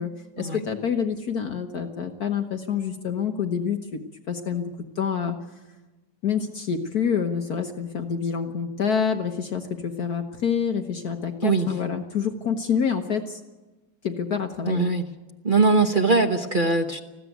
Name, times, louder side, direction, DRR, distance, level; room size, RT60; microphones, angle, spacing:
voice 1, 0.0-4.0 4.3-4.7 4.9-5.4 6.2-13.4 14.0-14.9, left 7 dB, 55° left, 5 dB, 1.6 m, -27 dB
voice 2, 14.6-15.1 15.4-17.0, right 3 dB, 35° right, 4 dB, 0.9 m, -21 dB
20.5 x 15.5 x 9.3 m, 1.1 s
omnidirectional pair, 2.0 m